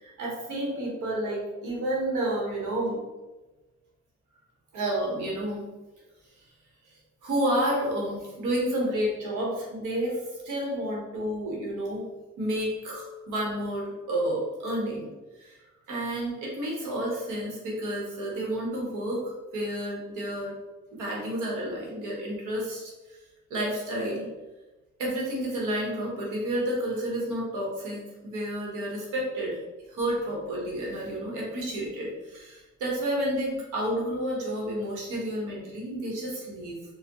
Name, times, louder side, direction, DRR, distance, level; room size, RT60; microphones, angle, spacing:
voice 1, 0.0-3.0 4.7-5.6 7.2-12.1 12.4-15.1 15.4-15.6 15.9-20.6 20.9-23.2 23.5-24.3 25.0-29.6 29.9-36.8, right 1 dB, 85° right, -3 dB, 1.2 m, -30 dB
4.3 x 2.4 x 3.0 m, 1.1 s
cardioid pair, 90°, 30 cm